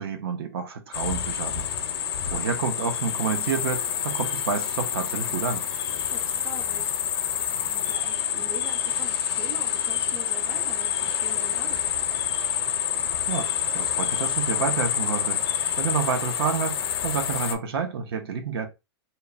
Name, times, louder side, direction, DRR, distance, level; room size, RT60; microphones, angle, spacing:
voice 1, 0.0-1.7 2.3-5.7 13.3-13.5 13.7-15.4 15.8-18.7, right 6 dB, 65° right, 0.5 m, -29 dB
sound 1, 0.9-17.6, left 9 dB, 70° left, 0.5 m, -27 dB
voice 2, 6.1-6.9 7.4-11.8, right 1 dB, 10° right, 0.5 m, -43 dB
2.9 x 2.1 x 2.3 m
hypercardioid pair, 165°, 13 cm